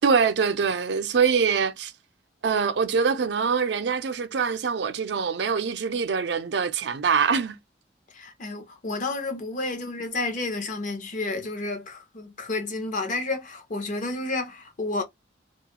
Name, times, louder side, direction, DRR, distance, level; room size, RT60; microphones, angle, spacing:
voice 1, 0.0-1.9 2.4-7.6, right 6 dB, 65° right, 0.5 m, -24 dB
voice 2, 8.1-15.0, left 2 dB, 45° left, 0.6 m, -31 dB
2.3 x 2.1 x 2.9 m
head